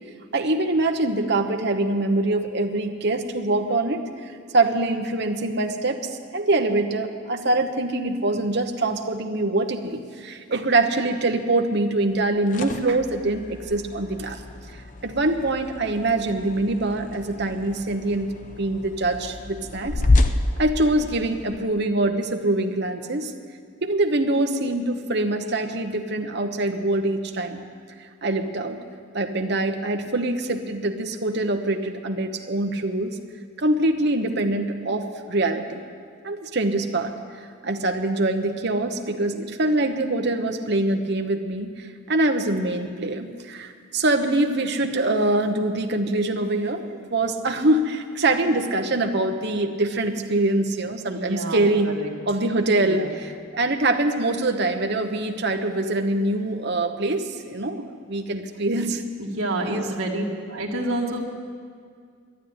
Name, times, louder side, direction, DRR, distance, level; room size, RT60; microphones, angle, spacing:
voice 1, 0.3-6.0 6.3-14.4 15.0-18.3 18.6-20.0 20.6-23.3 23.8-27.6 28.0-28.8 29.1-33.2 33.6-35.8 36.2-37.1 37.6-51.9 52.3-59.0 59.7-59.9, right 2 dB, 50° right, 5 dB, 1.0 m, -24 dB
sound 1, 12.2-21.6, left 2 dB, 35° left, 0.6 m, -28 dB
voice 2, 51.1-52.1 52.8-53.1 58.8-58.9 59.2-60.2 60.5-61.2, right 1 dB, 80° right, -2 dB, 1.9 m, -28 dB
12.0 x 10.0 x 9.5 m, 2.1 s
head